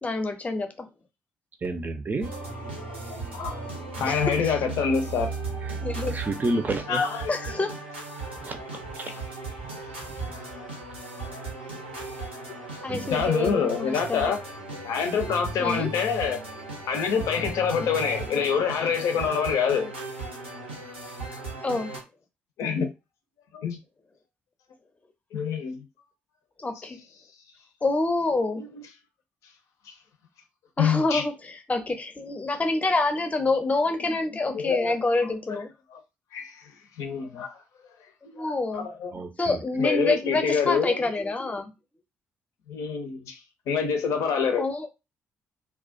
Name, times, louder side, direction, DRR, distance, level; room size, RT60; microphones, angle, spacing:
voice 1, 0.0-0.7 4.1-4.6 5.8-6.2 7.3-7.7 12.8-14.2 15.6-15.9 17.7-17.9 21.6-21.9 26.6-27.0 27.8-28.6 30.8-35.7 38.3-38.9 39.4-41.7 44.6-44.9, left 2 dB, 25° left, 0.6 m, -27 dB
voice 2, 1.6-2.3 6.1-7.0 8.4-8.6 9.0-9.1 12.9-13.1 39.1-39.6, right 2 dB, 30° right, 0.5 m, -29 dB
sound 1, 2.2-22.0, right 3 dB, 90° right, 0.6 m, -37 dB
voice 3, 3.1-3.6 4.0-5.3 6.9-7.3 9.0-9.2 13.1-14.4 14.8-16.4 16.9-19.9 22.6-22.9 23.5-23.8 25.3-25.8 28.6-28.8 30.8-31.2 34.0-34.1 34.5-34.9 35.5-35.6 35.9-36.0 36.3-36.7 37.0-37.6 38.3-38.5 38.7-39.1 39.8-41.1 42.7-43.4 43.7-44.6, left 6 dB, 60° left, 0.6 m, -26 dB
2.3 x 2.2 x 2.5 m
figure-of-eight pair, 45°, 6 cm